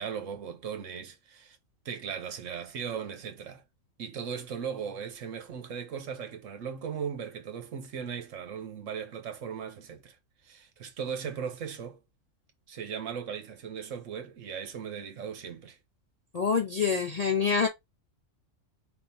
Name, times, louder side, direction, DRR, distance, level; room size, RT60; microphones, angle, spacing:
voice 1, 0.0-1.6 1.8-3.6 4.0-10.2 10.4-12.0 12.7-15.8, right 7 dB, 70° right, 1.2 m, -38 dB
voice 2, 16.3-17.7, left 6 dB, 45° left, 0.5 m, -26 dB
4.4 x 3.7 x 2.7 m
omnidirectional pair, 1.4 m